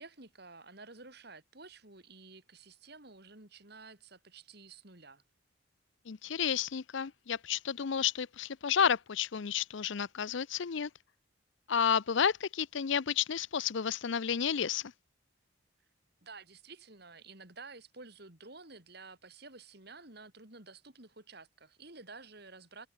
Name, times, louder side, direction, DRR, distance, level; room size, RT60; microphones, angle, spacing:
voice 1, 0.0-5.2 16.2-22.9, right 3 dB, 50° right, 3.5 m, -52 dB
voice 2, 6.1-10.9 11.7-14.9, left 7 dB, 65° left, 0.5 m, -31 dB
head